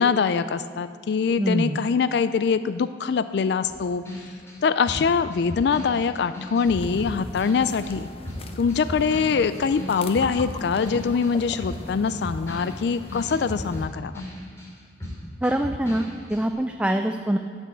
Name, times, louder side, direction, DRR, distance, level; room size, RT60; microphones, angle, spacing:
voice 1, 0.0-4.0 4.6-8.1 8.6-14.1, left 5 dB, 65° left, 13 dB, 0.4 m, -23 dB
voice 2, 1.4-1.8 15.4-17.4, right 1 dB, 5° right, 5 dB, 0.4 m, -24 dB
sound 1, 3.7-8.0 8.2-14.7 15.0-16.4, left 1 dB, 15° left, 3.2 m, -37 dB
sound 2, 6.6-13.9, left 2 dB, 35° left, 0.7 m, -39 dB
15.0 x 6.2 x 8.0 m, 2.1 s
head